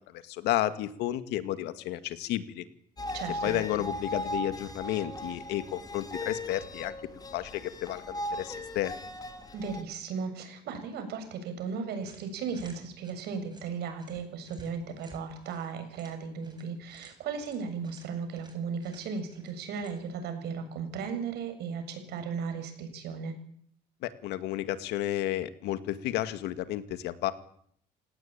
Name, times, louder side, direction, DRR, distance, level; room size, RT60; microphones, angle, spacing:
voice 1, 0.1-2.6 3.4-6.9 7.3-8.9 24.0-27.3, left 13 dB, 90° left, 11 dB, 2.2 m, -32 dB
sound 1, 3.0-9.8, left 1 dB, 20° left, 4.2 m, -38 dB
voice 2, 3.1-3.6 9.5-23.3, right 5 dB, 75° right, 7 dB, 7.2 m, -36 dB
sound 2, 12.0-20.2, right 3 dB, 25° right, 7.6 m, -56 dB
28.5 x 17.5 x 9.0 m, 0.66 s
cardioid pair, 110°, 17 cm